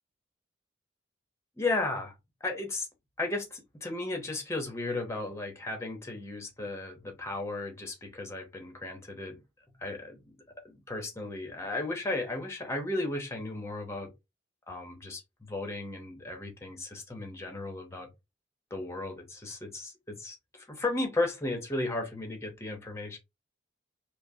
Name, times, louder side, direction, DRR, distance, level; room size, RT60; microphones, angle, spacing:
voice 1, 1.6-2.1 2.4-2.9 3.2-9.3 9.8-10.2 10.6-14.1 14.7-18.1 18.7-23.2, left 2 dB, 15° left, 0.8 m, -35 dB
5.1 x 2.1 x 2.7 m
head